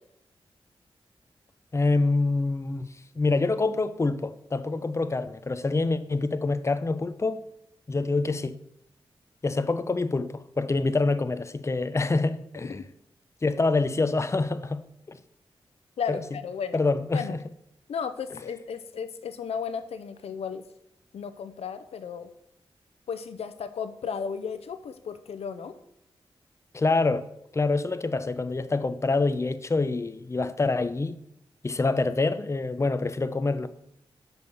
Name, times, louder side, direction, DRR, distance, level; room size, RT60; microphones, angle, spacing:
voice 1, 1.7-2.9 3.2-7.4 7.9-8.6 9.4-12.8 13.4-14.8 15.1-15.2 16.1-16.2 16.7-17.4 26.7-27.3 27.5-31.2 31.6-33.7, left 3 dB, 30° left, 0.6 m, -26 dB
voice 2, 16.0-16.8 17.1-17.4 17.9-20.6 21.1-22.3 23.1-25.7, left 6 dB, 90° left, 0.6 m, -34 dB
6.2 x 5.4 x 6.7 m
cardioid pair, 60°, 10 cm